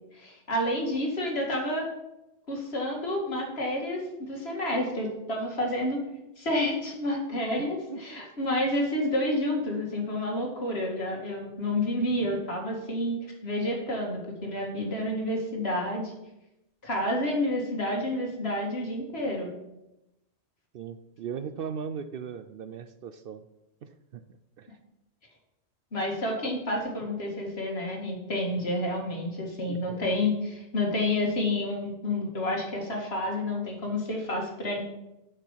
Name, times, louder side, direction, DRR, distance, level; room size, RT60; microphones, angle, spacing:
voice 1, 0.1-1.9 2.5-6.0 6.4-13.2 13.4-16.1 16.8-19.5 25.9-34.8, left 1 dB, 65° left, 0 dB, 2.1 m, -29 dB
voice 2, 7.9-8.2 20.7-23.4 23.8-24.2 24.6-24.7 29.7-30.1, right 7 dB, 60° right, 10 dB, 0.7 m, -38 dB
7.2 x 6.7 x 5.6 m, 0.92 s
omnidirectional pair, 1.2 m